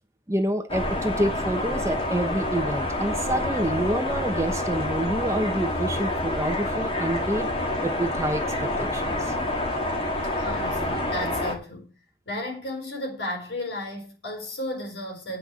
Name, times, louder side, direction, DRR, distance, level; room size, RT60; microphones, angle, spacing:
voice 1, 0.3-7.5 7.8-9.3, right 1 dB, 15° right, 1.0 m, -27 dB
sound 1, 0.7-11.5, left 1 dB, 30° left, 2.0 m, -28 dB
voice 2, 10.4-11.9 12.3-15.4, left 1 dB, 70° left, 4.4 m, -34 dB
9.2 x 6.0 x 8.2 m
head